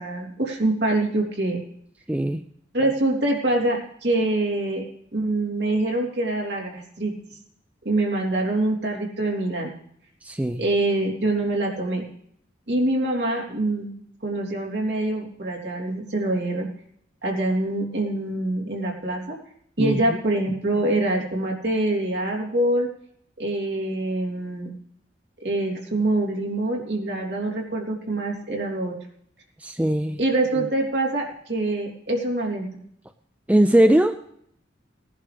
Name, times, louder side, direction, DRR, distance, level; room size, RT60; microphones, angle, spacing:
voice 1, 0.0-1.6 2.7-4.8 5.1-7.1 7.9-9.7 10.6-12.1 12.7-13.9 14.2-16.7 17.2-19.4 19.8-22.9 23.4-24.7 25.4-28.9 30.2-32.7, right 2 dB, 60° right, -1 dB, 3.4 m, -25 dB
voice 2, 2.1-2.4 10.2-10.6 19.8-20.2 29.6-30.2 33.5-34.2, right 1 dB, 10° right, 8 dB, 0.4 m, -20 dB
18.5 x 11.0 x 3.4 m, 0.67 s
head